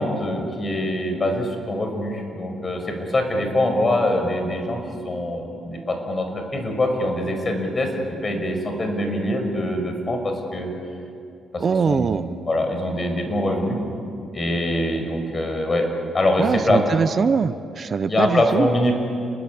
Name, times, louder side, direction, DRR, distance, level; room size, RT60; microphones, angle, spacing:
voice 1, 0.0-2.8 3.1-4.8 5.0-7.9 8.2-10.7 11.5-13.8 14.3-15.9 16.1-16.8 18.1-18.9, left 1 dB, 30° left, 4 dB, 6.0 m, -23 dB
voice 2, 11.6-12.3 16.4-18.7, right 6 dB, 45° right, 13 dB, 0.7 m, -22 dB
29.0 x 21.0 x 8.6 m, 2.5 s
cardioid pair, 90°, 0 cm